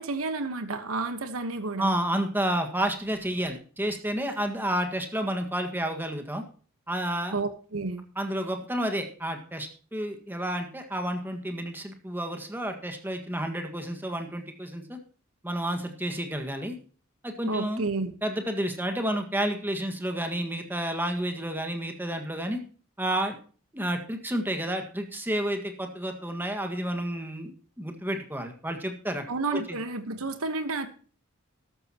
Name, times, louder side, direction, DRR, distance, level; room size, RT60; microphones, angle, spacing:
voice 1, 0.0-1.9 7.3-8.0 17.5-18.1 29.3-30.9, right 3 dB, 90° right, 8 dB, 1.2 m, -31 dB
voice 2, 1.8-6.4 6.9-7.3 8.1-15.0 15.4-16.8 17.2-17.8 18.2-22.6 23.0-23.4 23.7-27.5 27.8-29.2 29.5-29.8, right 1 dB, 10° right, 5 dB, 1.7 m, -30 dB
13.0 x 12.5 x 3.0 m, 0.40 s
head